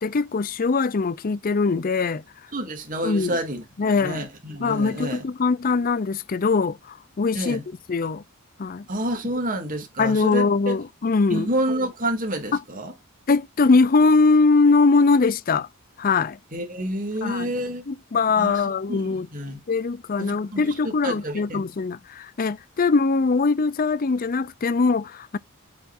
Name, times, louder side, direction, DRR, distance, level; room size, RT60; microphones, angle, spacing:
voice 1, 0.0-2.2 3.0-3.4 3.8-4.3 4.6-7.6 7.9-8.2 8.6-8.9 10.0-11.5 12.5-12.6 13.3-15.7 16.0-16.4 17.2-17.5 17.9-19.3 19.7-25.4, left 4 dB, 40° left, 0.5 m, -21 dB
voice 2, 2.5-5.2 7.3-7.6 8.9-10.8 11.3-12.9 16.5-17.8 18.4-18.6 18.9-19.6 20.2-21.6, right 1 dB, 35° right, 2.5 m, -29 dB
8.7 x 5.9 x 2.6 m
head